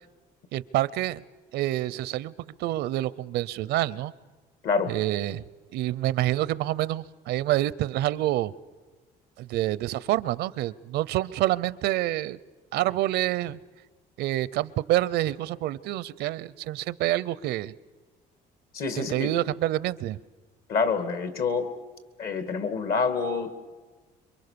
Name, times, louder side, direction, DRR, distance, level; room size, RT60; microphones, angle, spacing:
voice 1, 0.5-1.2 1.5-2.3 2.6-4.1 4.9-5.4 5.7-8.5 9.4-12.4 12.7-13.6 14.2-17.7 19.1-20.2, right 15 dB, 80° right, 20 dB, 0.7 m, -27 dB
voice 2, 4.6-5.0 18.7-19.3 20.7-21.7 22.2-23.5, left 5 dB, 60° left, 11 dB, 2.6 m, -27 dB
27.0 x 23.5 x 6.9 m, 1.3 s
cardioid pair, 110°, 17 cm